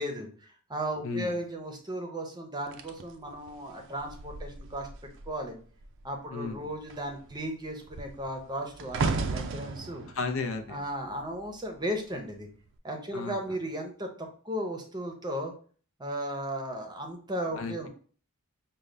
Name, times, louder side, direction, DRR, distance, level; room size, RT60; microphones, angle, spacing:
voice 1, 0.0-4.9 5.3-5.5 6.0-10.0 10.7-12.5 12.8-15.5 16.0-17.9, right 1 dB, 20° right, 3 dB, 0.7 m, -35 dB
voice 2, 1.0-1.4 6.3-6.7 10.1-10.8 13.1-13.4 17.6-17.9, left 4 dB, 65° left, 7 dB, 0.5 m, -34 dB
sound 1, 2.7-5.4 5.7-6.1 6.4-11.7 12.5-12.7, right 4 dB, 60° right, 0.4 m, -36 dB
5.1 x 2.3 x 3.3 m, 0.43 s
head